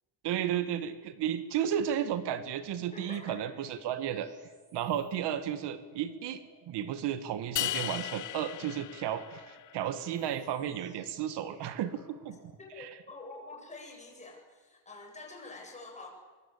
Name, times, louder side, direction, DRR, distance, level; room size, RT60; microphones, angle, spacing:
voice 1, 0.2-4.3 4.7-12.4 12.8-13.0, right 10 dB, 70° right, 11 dB, 1.8 m, -33 dB
sound 1, 2.7-12.6, right 3 dB, 45° right, 6.7 m, -62 dB
voice 2, 2.9-3.4 12.6-16.1, left 3 dB, 15° left, 0 dB, 8.0 m, -47 dB
sound 2, 7.6-9.9, left 13 dB, 45° left, 0.7 m, -36 dB
24.0 x 23.5 x 8.6 m, 1.4 s
cardioid pair, 140°, 43 cm